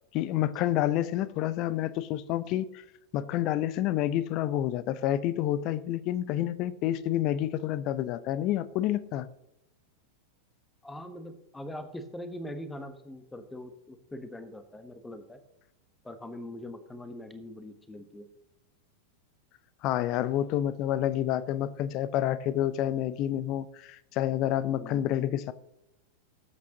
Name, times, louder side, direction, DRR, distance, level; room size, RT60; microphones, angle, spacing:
voice 1, 0.1-2.8 3.1-9.3 19.8-25.5, left 12 dB, 40° left, 0.7 m, -29 dB
voice 2, 10.8-15.4 16.0-18.3 24.8-25.1, left 1 dB, 10° left, 1.1 m, -42 dB
19.0 x 8.4 x 2.9 m
figure-of-eight pair, 90°, 0 cm